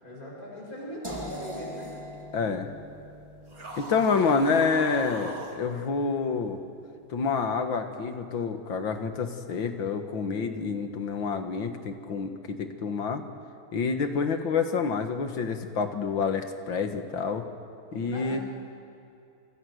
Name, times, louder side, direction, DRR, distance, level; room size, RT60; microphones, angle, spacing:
voice 1, 0.0-1.9 14.3-14.4 17.9-18.4, left 1 dB, 45° left, -3 dB, 8.6 m, -40 dB
sound 1, 1.0-7.0, equal, 10° right, 3.4 m, -44 dB
voice 2, 2.3-2.7 3.8-6.6 7.1-13.2 13.7-17.5 17.9-18.4, left 5 dB, 75° left, 6 dB, 2.3 m, -28 dB
sound 2, 3.5-5.6, right 2 dB, 45° right, 3.1 m, -39 dB
29.5 x 26.0 x 6.6 m, 2.6 s
omnidirectional pair, 2.1 m